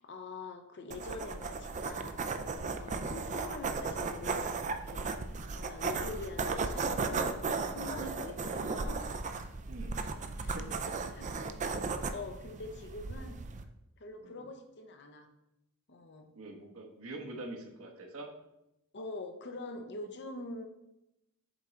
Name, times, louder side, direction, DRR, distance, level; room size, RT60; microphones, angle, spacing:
voice 1, 0.0-2.2 2.5-5.2 5.5-9.0 9.3-9.6 10.4-10.6 11.1-11.8 12.1-13.4 14.0-15.3 15.9-16.3 18.9-20.7, left 2 dB, 55° left, 5 dB, 0.8 m, -45 dB
sound 1, 0.9-13.6, right 4 dB, 35° right, 0.4 m, -36 dB
voice 2, 9.7-10.0 10.5-10.6 14.2-14.4 16.3-18.3, right 2 dB, 70° right, 2 dB, 1.1 m, -45 dB
6.9 x 3.8 x 4.4 m, 0.87 s
head